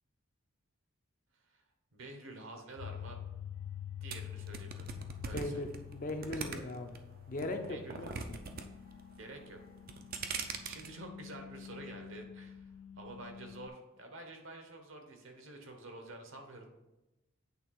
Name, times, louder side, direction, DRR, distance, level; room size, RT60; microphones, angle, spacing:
voice 1, 1.9-3.2 4.0-4.9 5.2-5.7 6.3-6.6 7.7-8.1 9.2-9.6 10.6-16.7, right 2 dB, 65° right, 4 dB, 1.0 m, -49 dB
sound 1, 2.8-13.7, left 9 dB, 80° left, 0.3 m, -48 dB
sound 2, 4.1-7.0 7.4-8.6 8.9-9.4 9.8-10.9, right 5 dB, 45° right, 0.5 m, -40 dB
voice 2, 5.3-5.7 5.9-7.0 7.3-8.4, left 2 dB, 40° left, 5 dB, 0.6 m, -39 dB
8.4 x 3.4 x 4.6 m, 0.98 s
head